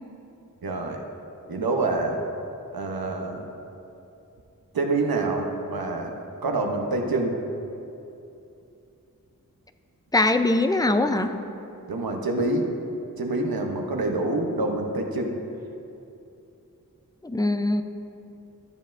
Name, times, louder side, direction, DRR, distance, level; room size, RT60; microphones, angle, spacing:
voice 1, 0.6-1.0 1.5-2.2 2.7-3.4 4.7-6.1 6.4-7.4 11.9-12.7 13.2-15.4, right 2 dB, 90° right, 2 dB, 0.9 m, -26 dB
voice 2, 10.1-11.3 17.2-17.8, left 2 dB, 10° left, 8 dB, 0.4 m, -22 dB
12.5 x 7.3 x 2.6 m, 2.7 s
wide cardioid pair, 40°, 35 cm